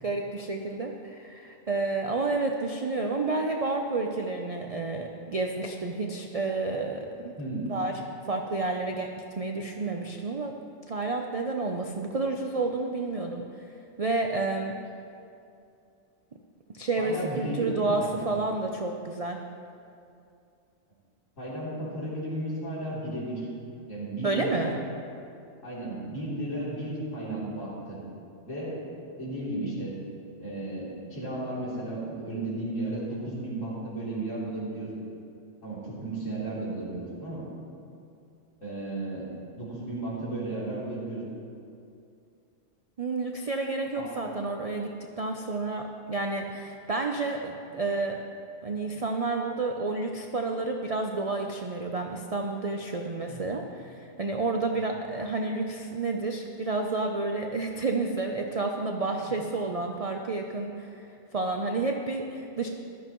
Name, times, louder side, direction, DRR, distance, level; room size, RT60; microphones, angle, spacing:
voice 1, 0.0-7.3 7.7-7.9 8.3-9.1 9.4-10.5 10.9-13.4 14.0-14.7 16.7-19.4 24.2-24.7 43.0-44.9 45.2-48.2 48.6-62.7, right 3 dB, 50° right, 3 dB, 0.4 m, -30 dB
voice 2, 7.4-7.7 17.0-18.4 21.4-23.5 23.9-24.8 25.6-28.0 28.4-28.8 29.2-30.0 30.4-34.9 35.6-37.5 38.6-39.3 39.5-41.2 44.0-44.1 53.3-53.4, right 1 dB, 70° left, -8 dB, 3.6 m, -34 dB
15.0 x 12.0 x 3.0 m, 2.5 s
omnidirectional pair, 1.4 m